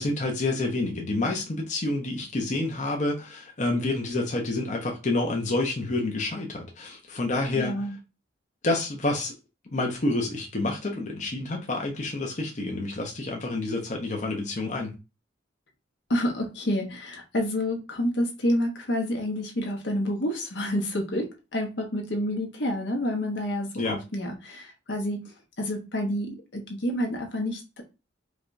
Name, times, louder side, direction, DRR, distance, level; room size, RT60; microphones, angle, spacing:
voice 1, 0.0-7.7 8.6-9.3 9.7-14.9 23.8-24.0, left 2 dB, 40° left, 0.8 m, -28 dB
voice 2, 7.5-7.9 16.1-25.2 25.6-27.8, left 1 dB, 65° left, 1.1 m, -29 dB
4.9 x 2.4 x 2.6 m
head